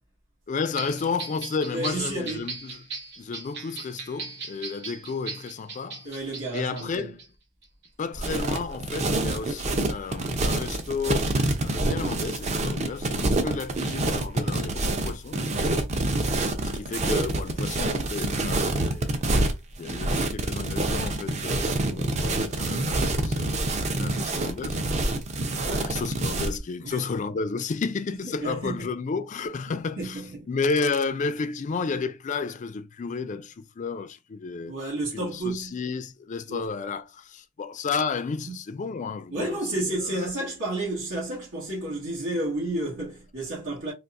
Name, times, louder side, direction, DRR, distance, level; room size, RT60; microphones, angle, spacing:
voice 1, 0.5-2.8 3.2-6.1 6.5-7.2 8.0-11.3 11.6-15.4 16.3-19.2 19.8-23.7 24.0-24.9 25.5-30.2 30.5-34.7 35.1-40.3, left 4 dB, 35° left, 0.3 m, -32 dB
sound 1, 0.8-7.3 7.6-7.9, right 4 dB, 55° right, 1.0 m, -38 dB
voice 2, 1.7-2.5 6.0-7.2 25.6-25.9 26.8-27.0 28.2-28.9 30.0-30.5 34.6-35.8 36.5-36.7 38.5-38.6 39.3-43.9, right 2 dB, 90° right, 1.7 m, -31 dB
sound 2, 8.1-26.6, right 2 dB, 30° right, 0.5 m, -26 dB
4.0 x 2.5 x 2.4 m
head